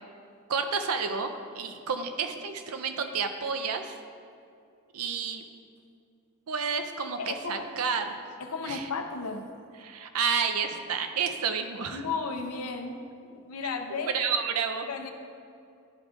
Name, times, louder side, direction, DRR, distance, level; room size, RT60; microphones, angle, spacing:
voice 1, 0.5-3.9 4.9-5.4 6.5-8.0 8.7-8.9 9.8-12.0 14.1-14.9, right 5 dB, 80° right, 7 dB, 0.6 m, -30 dB
voice 2, 7.2-7.7 8.4-9.4 11.9-14.1 14.9-15.1, left 4 dB, 85° left, 5 dB, 0.6 m, -34 dB
11.5 x 5.1 x 2.4 m, 2.4 s
head